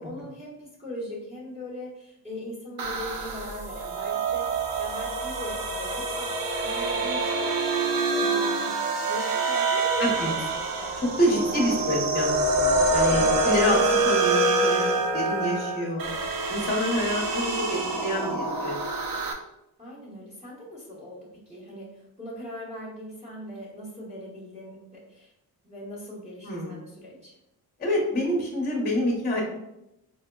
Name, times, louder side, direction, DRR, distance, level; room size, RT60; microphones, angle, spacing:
voice 1, 0.0-4.5 4.8-6.3 6.6-8.8 9.0-10.9 11.3-11.9 12.8-14.1 17.2-17.4 19.8-21.9 22.2-25.3 25.6-27.3, left 1 dB, 15° right, -9 dB, 1.1 m, -39 dB
sound 1, 2.8-19.3, right 3 dB, 65° right, 0.5 m, -26 dB
voice 2, 11.2-13.8 14.0-14.9 15.1-16.1 16.5-18.7 26.4-26.7 27.8-29.4, equal, 25° left, -3 dB, 0.8 m, -27 dB
4.9 x 2.1 x 2.2 m, 0.86 s
cardioid pair, 125°, 37 cm